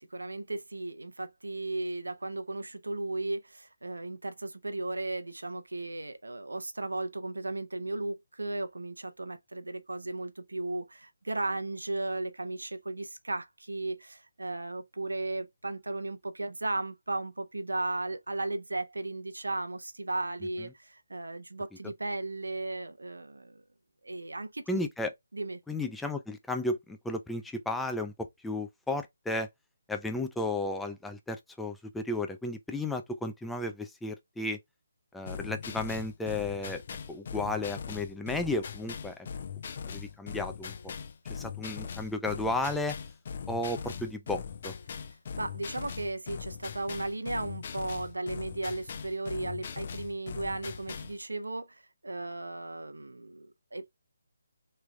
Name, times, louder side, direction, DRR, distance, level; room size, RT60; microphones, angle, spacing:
voice 1, 0.0-23.6 24.0-24.8 25.3-25.6 44.9-45.1 45.4-53.8, right 2 dB, 85° right, 0.7 m, -35 dB
voice 2, 24.7-25.1 25.7-29.5 29.9-34.6 35.1-36.8 37.1-39.2 39.9-40.9 41.3-43.0 43.5-44.7, left 2 dB, 5° left, 0.5 m, -33 dB
sound 1, 35.3-51.2, left 6 dB, 45° left, 0.6 m, -40 dB
3.6 x 3.2 x 3.3 m
figure-of-eight pair, 150°, 0 cm